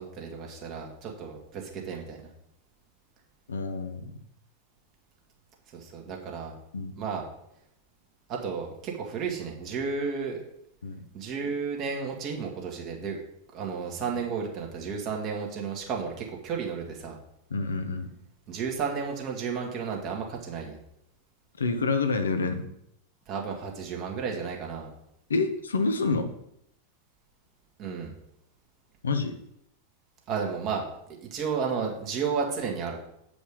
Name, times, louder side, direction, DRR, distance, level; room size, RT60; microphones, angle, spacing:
voice 1, 0.0-2.3 5.7-6.6 7.0-7.2 8.3-10.4 11.1-13.2 13.5-17.2 18.5-20.8 23.3-24.9 27.8-28.1 30.3-30.9 31.2-33.0, right 5 dB, 40° right, 0 dB, 2.1 m, -32 dB
voice 2, 3.5-4.1 6.7-7.0 10.8-11.0 17.5-18.1 21.6-22.7 25.3-26.3 29.0-29.4, left 3 dB, 70° left, 8 dB, 0.9 m, -28 dB
8.3 x 5.1 x 5.1 m, 0.76 s
figure-of-eight pair, 90°, 0 cm